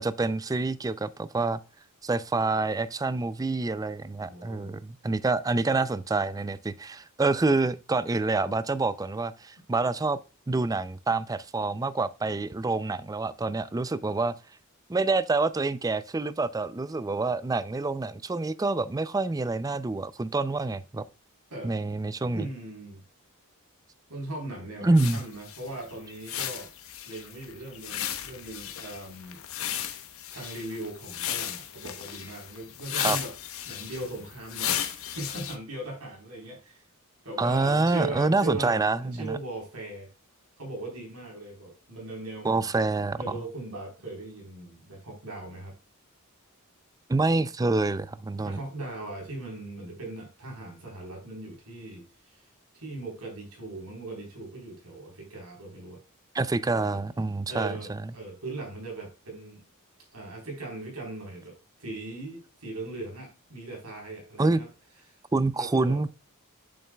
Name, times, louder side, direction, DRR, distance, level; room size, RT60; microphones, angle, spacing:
voice 1, 0.0-1.6 2.0-10.2 10.5-14.3 14.9-21.1 21.6-22.5 24.8-25.2 33.0-33.2 37.4-39.4 42.4-43.2 47.1-48.6 56.3-57.7 64.4-64.6 65.3-66.1, right 3 dB, 15° right, 0.4 m, -27 dB
voice 2, 4.3-4.8 21.5-21.7 22.3-23.0 24.1-26.7 27.1-29.8 30.3-33.3 33.7-36.8 37.2-40.1 40.6-42.8 43.2-45.7 48.4-52.4 52.7-56.0 56.7-57.0 57.5-59.6 60.1-64.7 65.5-66.0, right 2 dB, 90° right, 3.9 m, -39 dB
sound 1, 25.0-35.6, left 10 dB, 65° left, 1.0 m, -35 dB
8.6 x 7.1 x 2.3 m
head